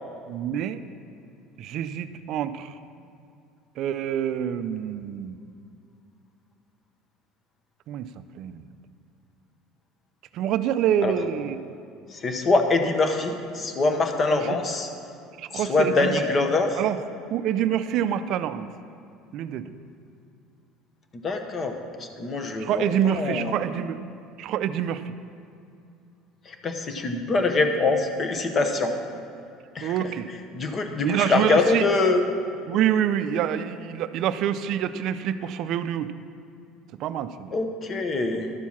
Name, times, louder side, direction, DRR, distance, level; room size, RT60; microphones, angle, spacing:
voice 1, 0.3-0.8 1.6-2.7 3.8-5.4 7.9-8.1 8.4-8.6 10.3-11.6 14.4-14.5 15.4-16.2 16.8-17.0 17.3-18.7 19.3-19.7 22.6-24.0 24.4-25.0 29.8-30.3 31.0-31.9 32.7-36.1 37.0-37.5, right 10 dB, 55° right, 12 dB, 0.4 m, -26 dB
voice 2, 12.1-14.9 15.5-16.8 21.2-23.6 26.5-28.9 29.7-30.1 30.5-32.2 37.5-38.5, left 3 dB, 30° left, 6 dB, 0.9 m, -24 dB
12.0 x 4.6 x 7.2 m, 2.5 s
cardioid pair, 135°, 0 cm